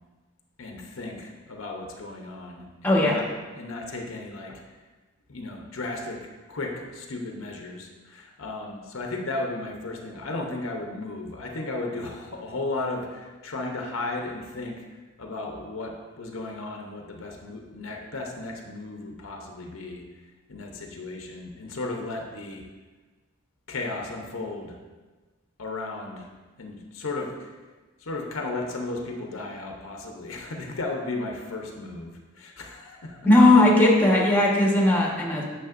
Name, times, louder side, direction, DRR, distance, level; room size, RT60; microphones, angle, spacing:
voice 1, 0.6-3.3 3.5-4.6 5.3-14.9 15.2-20.0 20.5-22.7 23.7-24.8 25.6-26.3 26.6-27.5 28.0-33.6, left 2 dB, 75° left, 2 dB, 0.8 m, -35 dB
voice 2, 2.8-3.2 33.2-35.4, left 1 dB, 10° left, -2 dB, 1.2 m, -18 dB
9.1 x 6.5 x 2.5 m, 1.3 s
head